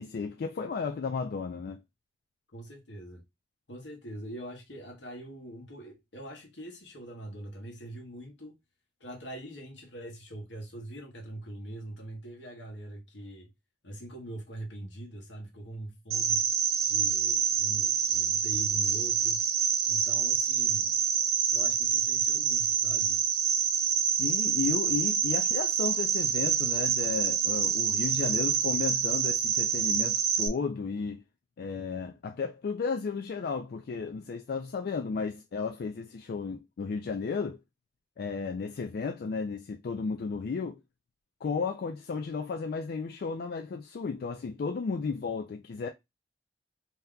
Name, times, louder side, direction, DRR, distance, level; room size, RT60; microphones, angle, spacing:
voice 1, 0.0-1.8 24.2-31.2 31.6-37.6 38.2-40.8 41.4-45.9, left 5 dB, 60° left, 0.3 m, -33 dB
voice 2, 2.5-3.2 3.7-8.6 9.0-13.5 13.8-16.4 16.8-19.5 19.9-21.0 21.5-23.2, right 1 dB, 85° left, 1.1 m, -43 dB
Cricket, 16.1-30.5, right 7 dB, 60° right, 0.4 m, -27 dB
2.8 x 2.2 x 3.5 m
head